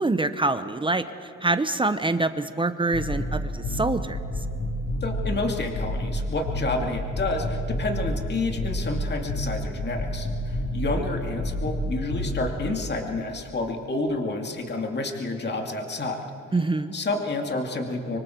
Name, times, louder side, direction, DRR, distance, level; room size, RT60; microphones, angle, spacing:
voice 1, 0.0-4.2 16.5-16.9, right 2 dB, 15° right, 10 dB, 0.8 m, -25 dB
sound 1, 2.9-12.6, left 1 dB, 85° left, 4.2 m, -30 dB
voice 2, 5.0-16.2 16.9-18.2, left 2 dB, 35° left, 3 dB, 2.5 m, -29 dB
25.0 x 24.5 x 4.6 m, 2.9 s
cardioid pair, 90°, 30 cm